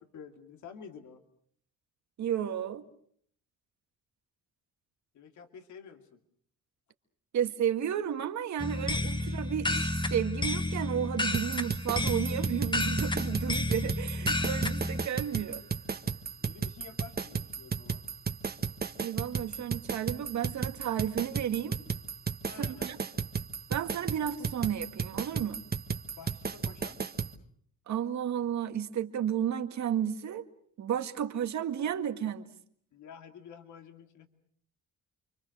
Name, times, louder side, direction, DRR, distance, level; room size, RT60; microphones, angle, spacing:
voice 1, 0.1-1.2 5.1-6.2 16.4-18.0 22.5-23.0 26.2-27.0 32.9-34.3, left 7 dB, 70° left, 2.6 m, -49 dB
voice 2, 2.2-2.9 7.3-15.7 19.0-21.8 22.6-23.0 23.7-25.6 27.9-30.5 30.8-32.6, right 9 dB, 65° right, 2.0 m, -32 dB
sound 1, 8.6-15.1, left 2 dB, 15° left, 1.5 m, -31 dB
sound 2, 11.3-27.3, right 6 dB, 30° right, 1.5 m, -34 dB
29.5 x 24.0 x 6.5 m
cardioid pair, 90°, 30 cm